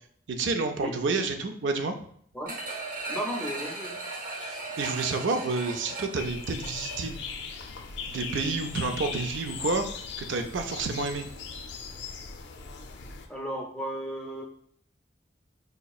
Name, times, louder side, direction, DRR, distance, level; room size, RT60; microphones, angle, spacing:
voice 1, 0.3-2.0 4.4-7.2 8.1-9.8 10.2-11.3, right 3 dB, 80° right, 6 dB, 0.5 m, -29 dB
sound 1, 2.5-7.2 7.6-7.7, right 2 dB, 45° right, 0.7 m, -37 dB
voice 2, 3.1-4.0 13.0-14.4, equal, 5° left, 0 dB, 0.6 m, -35 dB
sound 2, 6.2-13.3, left 5 dB, 70° left, 0.4 m, -39 dB
5.1 x 2.9 x 2.3 m, 0.62 s
head